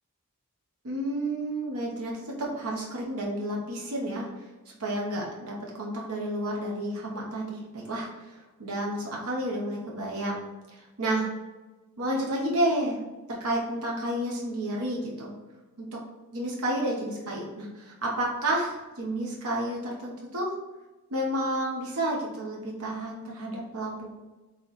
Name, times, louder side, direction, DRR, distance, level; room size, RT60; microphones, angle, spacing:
voice 1, 0.8-4.3 4.8-8.1 8.6-11.3 12.0-13.0 13.3-15.3 15.8-15.9 16.3-20.5 21.1-24.2, right 1 dB, 80° right, -2 dB, 0.9 m, -31 dB
4.3 x 3.1 x 4.0 m, 1.1 s
head